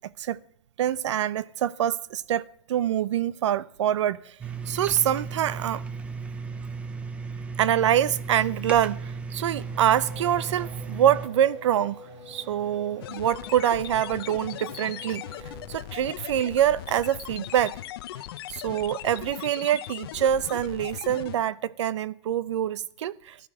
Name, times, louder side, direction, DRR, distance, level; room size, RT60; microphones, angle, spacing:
voice 1, 0.8-2.4 2.7-4.4 4.7-5.8 7.6-12.0 12.3-15.2 15.7-17.8 18.5-23.3, right 10 dB, 80° right, 0.7 m, -25 dB
sound 1, 4.4-11.3, right 4 dB, 10° right, 0.6 m, -35 dB
Race car auto racing / Accelerating revving vroom, 9.1-16.3, equal, 30° right, 3.9 m, -46 dB
sound 2, 13.0-21.4, left 13 dB, 55° left, 0.8 m, -39 dB
14.5 x 11.0 x 6.4 m
supercardioid pair, 165°, 15 cm